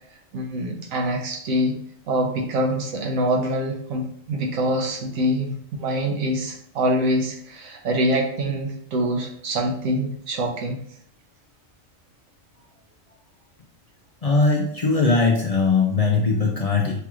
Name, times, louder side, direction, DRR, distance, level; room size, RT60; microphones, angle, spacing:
voice 1, 0.3-1.8 2.1-10.8, equal, 85° right, 2 dB, 1.2 m, -25 dB
voice 2, 14.2-16.9, left 4 dB, 50° left, -1 dB, 0.4 m, -20 dB
5.7 x 2.4 x 3.0 m, 0.64 s
omnidirectional pair, 1.4 m